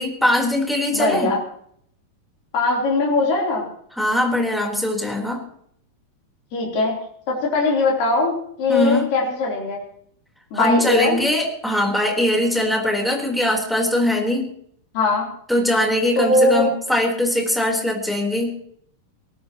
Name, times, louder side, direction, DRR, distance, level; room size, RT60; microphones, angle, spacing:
voice 1, 0.0-1.3 4.0-5.4 8.7-9.1 10.5-14.5 15.5-18.5, left 1 dB, ahead, 0 dB, 3.5 m, -21 dB
voice 2, 0.9-1.4 2.5-3.7 6.5-7.0 7.3-9.8 10.5-11.2 14.9-15.3 16.2-16.7, left 2 dB, 70° left, -2 dB, 5.4 m, -20 dB
22.0 x 18.5 x 3.1 m, 0.66 s
omnidirectional pair, 4.0 m